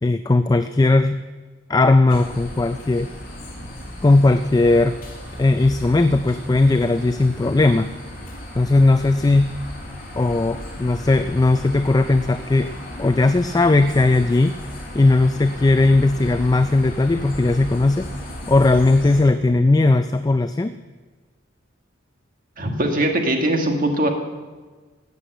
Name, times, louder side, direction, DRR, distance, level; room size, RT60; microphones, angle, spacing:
voice 1, 0.0-1.2 1.7-3.1 4.0-5.0 5.4-7.9 8.5-9.6 10.2-12.7 13.0-14.6 14.9-18.1 18.5-20.8, left 2 dB, 20° left, 10 dB, 0.3 m, -17 dB
sound 1, 2.1-19.2, equal, 45° left, 5.1 m, -35 dB
voice 2, 22.6-24.1, right 1 dB, 45° right, 4 dB, 1.6 m, -21 dB
14.0 x 8.2 x 7.8 m, 1.4 s
head